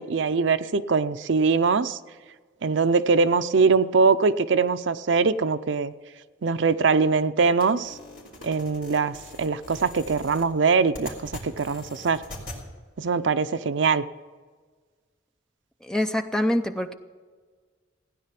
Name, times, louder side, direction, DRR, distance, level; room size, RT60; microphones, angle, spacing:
voice 1, 0.0-2.0 2.6-5.9 6.4-8.0 8.4-12.2 13.0-14.0, right 4 dB, 70° right, 13 dB, 0.5 m, -22 dB
sound 1, 7.6-12.6, left 1 dB, 45° left, 3.5 m, -42 dB
voice 2, 15.9-16.9, left 1 dB, 5° left, 7 dB, 0.5 m, -25 dB
16.0 x 9.7 x 5.8 m, 1.5 s
head